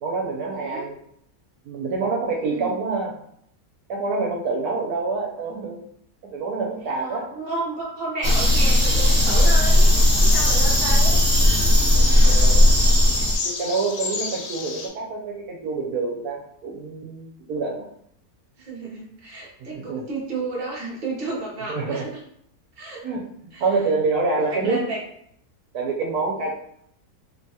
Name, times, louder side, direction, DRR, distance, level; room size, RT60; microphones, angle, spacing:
voice 1, 0.0-1.0 1.7-3.1 3.9-5.8 6.3-7.3 11.9-12.6 13.4-17.9 19.6-20.0 21.7-22.1 23.0-24.8 25.7-26.5, right 3 dB, 80° right, 0 dB, 1.1 m, -27 dB
voice 2, 0.5-0.9 2.3-2.8 6.8-9.9 10.2-11.2 18.6-22.2 22.8-23.1 23.5-23.7 24.4-25.0 26.4-26.5, right 3 dB, 40° right, -3 dB, 0.7 m, -32 dB
sound 1, 8.2-13.4, left 1 dB, 20° right, 1.2 m, -16 dB
sound 2, 9.0-14.9, left 4 dB, 80° left, 1.1 m, -32 dB
3.1 x 2.2 x 2.7 m, 0.69 s
omnidirectional pair, 1.6 m